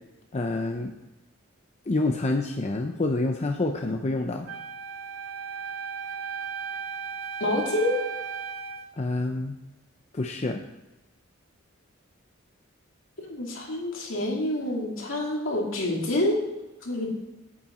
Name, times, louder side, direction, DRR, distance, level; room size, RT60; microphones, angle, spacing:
voice 1, 0.3-0.9 1.9-4.5 9.0-9.5 10.1-10.6, left 2 dB, 35° left, 3 dB, 0.6 m, -27 dB
Wind instrument woodwind instrument, 4.5-8.9, right 6 dB, 75° right, 0.8 m, -35 dB
voice 2, 7.4-8.0 13.2-16.4 16.8-17.1, left 1 dB, 70° left, -1 dB, 2.5 m, -27 dB
9.0 x 8.6 x 4.3 m, 1.0 s
head